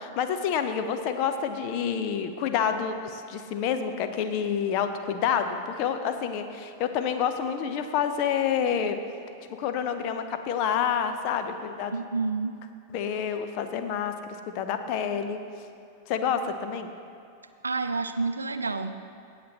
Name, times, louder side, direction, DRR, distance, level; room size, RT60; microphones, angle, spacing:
voice 1, 0.0-9.0 9.5-11.9 12.9-15.4 16.1-16.9, left 7 dB, 45° left, 8 dB, 0.7 m, -28 dB
voice 2, 11.9-12.5 17.6-18.9, right 3 dB, 75° right, 9 dB, 0.5 m, -29 dB
17.5 x 7.6 x 3.0 m, 2.6 s
figure-of-eight pair, 90°, 0 cm